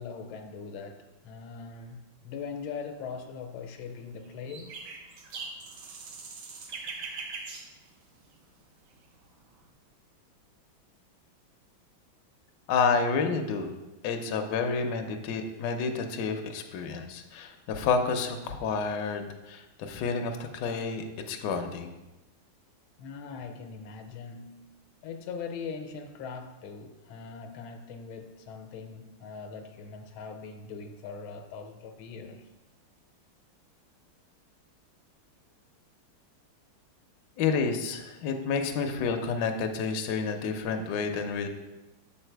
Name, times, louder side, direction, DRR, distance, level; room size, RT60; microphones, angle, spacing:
voice 1, 0.0-4.8 23.0-24.7 25.0-32.5, left 5 dB, 85° left, 5 dB, 1.5 m, -41 dB
sound 1, 2.8-3.3 4.0-8.6 8.9-9.7, right 4 dB, 80° right, 1.7 m, -42 dB
voice 2, 12.7-13.7 14.0-21.9 37.4-41.5, left 5 dB, 70° left, 5 dB, 1.1 m, -29 dB
7.0 x 4.0 x 4.5 m, 1.1 s
omnidirectional pair, 2.2 m